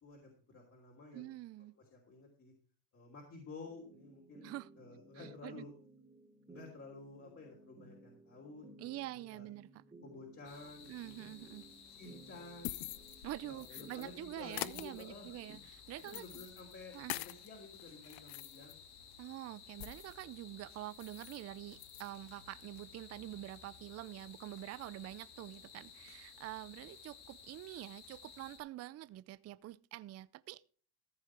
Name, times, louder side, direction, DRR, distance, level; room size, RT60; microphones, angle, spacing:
voice 1, 0.0-1.3 1.9-2.5 2.9-5.7 6.5-8.6 9.3-9.5 10.0-11.2 11.9-12.8 13.4-15.3 16.1-18.8, left 3 dB, 35° left, 3.1 m, -52 dB
voice 2, 1.1-1.7 4.4-4.7 5.1-5.7 8.8-9.8 10.9-11.6 13.2-16.5 16.9-17.1 19.2-30.8, right 15 dB, 40° right, 0.5 m, -46 dB
sound 1, 3.6-15.6, right 2 dB, 15° right, 2.3 m, -59 dB
sound 2, 10.4-28.6, left 7 dB, 65° left, 3.1 m, -56 dB
sound 3, 12.3-14.1 14.5-17.5 17.9-20.2 20.6-20.7 20.9-21.4 21.7-22.1, left 19 dB, 80° left, 0.7 m, -46 dB
14.5 x 6.5 x 4.7 m
cardioid pair, 125°, 42 cm